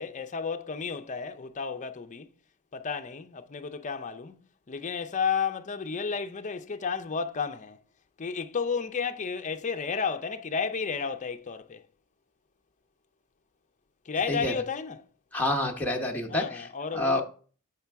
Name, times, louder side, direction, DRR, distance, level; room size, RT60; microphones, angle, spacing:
voice 1, 0.0-2.3 2.7-4.4 4.7-7.8 8.2-11.8 14.1-15.0 16.3-17.2, left 5 dB, 35° left, 0.5 m, -32 dB
voice 2, 15.3-17.2, left 1 dB, 5° left, 0.9 m, -28 dB
8.1 x 5.7 x 3.4 m
head